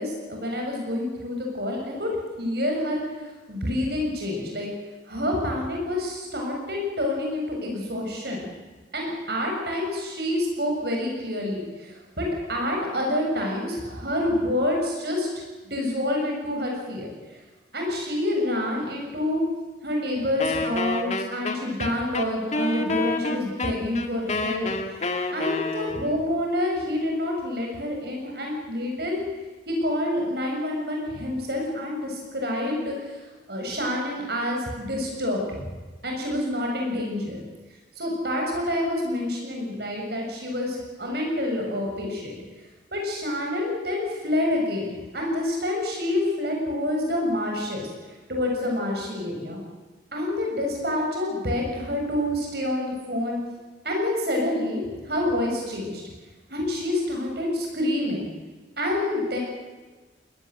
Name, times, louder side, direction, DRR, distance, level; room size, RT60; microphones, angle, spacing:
voice 1, 0.0-2.1 2.4-4.7 5.1-8.4 8.9-15.3 15.6-17.1 17.7-19.4 19.8-25.0 25.3-29.2 29.7-33.1 33.5-35.7 36.0-37.4 38.0-42.4 42.9-47.9 48.3-49.6 50.1-53.4 53.8-56.0 56.5-58.2 58.8-59.4, left 1 dB, 60° right, 1 dB, 7.3 m, -27 dB
Wind instrument woodwind instrument, 20.4-26.2, left 2 dB, 35° left, 1.8 m, -28 dB
21.0 x 19.5 x 7.9 m, 1.3 s
head